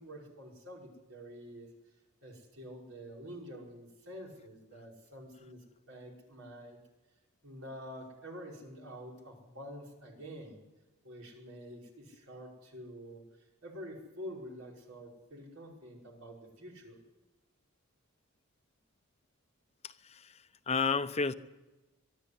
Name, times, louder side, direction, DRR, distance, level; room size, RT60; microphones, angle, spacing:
voice 1, 0.0-1.7 2.2-6.8 7.4-10.6 11.0-17.0, equal, 70° right, -1 dB, 5.3 m, -48 dB
voice 2, 19.8-21.3, left 4 dB, 30° left, 11 dB, 0.8 m, -32 dB
24.0 x 11.5 x 10.0 m, 1.1 s
head